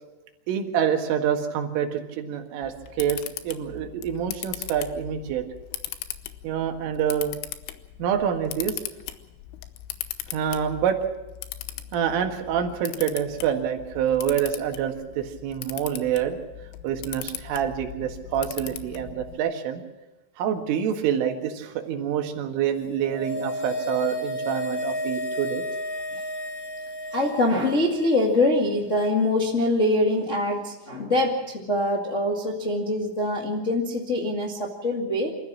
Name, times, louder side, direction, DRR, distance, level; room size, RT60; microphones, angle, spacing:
voice 1, 0.5-5.5 6.4-7.3 8.0-8.8 10.3-11.0 11.9-16.4 16.8-19.8 20.4-25.6, right 9 dB, 85° right, 4 dB, 4.3 m, -27 dB
Camera, 2.6-19.3, left 13 dB, 90° left, 3.6 m, -39 dB
sound 1, 22.8-28.3 28.6-28.7, left 1 dB, 40° left, 4.2 m, -32 dB
voice 2, 27.1-35.3, left 1 dB, 65° left, -1 dB, 0.7 m, -24 dB
26.0 x 14.0 x 7.4 m, 1.0 s
omnidirectional pair, 5.6 m